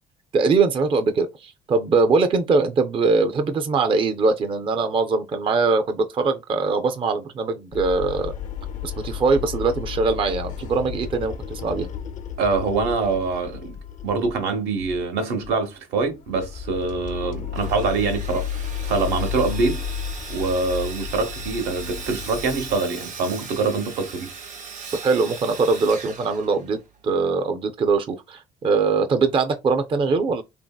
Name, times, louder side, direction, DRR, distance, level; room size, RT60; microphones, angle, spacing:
voice 1, 0.3-8.3 8.8-11.9 25.0-30.4, right 4 dB, 30° right, 0.4 m, -22 dB
sound 1, 7.7-14.5 14.8-15.1 15.4-15.6 16.0-22.8, left 8 dB, 50° left, 0.4 m, -33 dB
voice 2, 12.4-13.8 14.0-19.9 20.3-24.3, right 4 dB, 80° right, 0.9 m, -24 dB
Sawing, 17.5-27.0, right 5 dB, 45° right, 0.8 m, -38 dB
2.8 x 2.6 x 2.2 m
cardioid pair, 110°, 17 cm